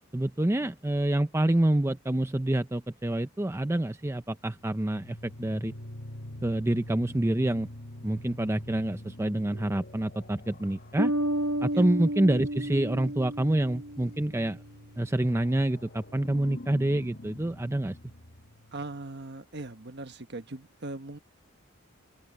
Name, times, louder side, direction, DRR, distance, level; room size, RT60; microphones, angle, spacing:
voice 1, 0.1-5.7 6.4-7.7 8.0-11.1 11.6-14.6 15.0-18.0, right 1 dB, 15° right, 0.5 m, -27 dB
sound 1, 4.4-19.0, left 1 dB, 50° left, 1.3 m, -46 dB
sound 2, 11.0-14.3, right 1 dB, 85° right, 1.9 m, -31 dB
voice 2, 18.7-21.2, right 2 dB, 55° right, 1.4 m, -40 dB
head